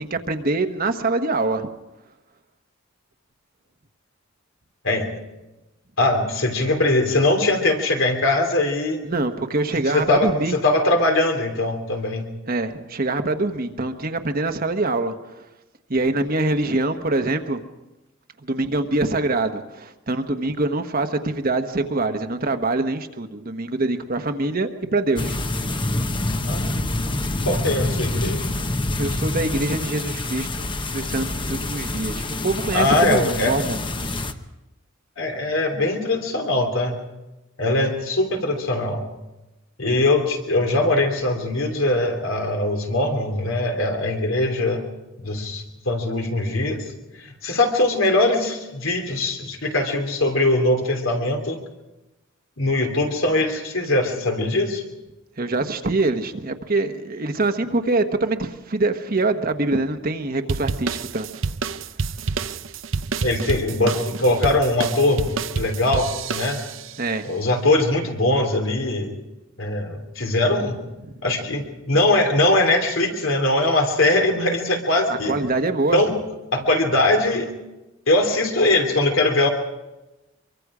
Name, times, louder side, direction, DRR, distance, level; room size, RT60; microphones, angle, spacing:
voice 1, 0.0-1.7 9.0-10.6 12.5-15.5 15.9-17.6 18.4-25.4 29.0-33.8 55.4-61.3 67.0-67.3 75.1-76.0, right 2 dB, 45° right, 7 dB, 1.2 m, -24 dB
voice 2, 6.0-9.0 9.9-12.3 26.4-26.9 27.4-28.5 32.7-33.6 35.2-37.0 37.6-39.1 39.8-44.8 45.2-46.8 47.1-51.6 52.6-54.8 63.2-66.6 67.2-69.2 69.6-70.8 71.2-75.4 75.9-76.1 76.5-77.5 78.1-79.5, left 2 dB, 80° left, 3 dB, 3.1 m, -21 dB
sound 1, 25.2-34.3, left 2 dB, 25° left, 0.9 m, -26 dB
sound 2, 60.5-67.0, right 4 dB, 70° right, 0.7 m, -28 dB
24.0 x 23.5 x 5.0 m, 1.0 s
head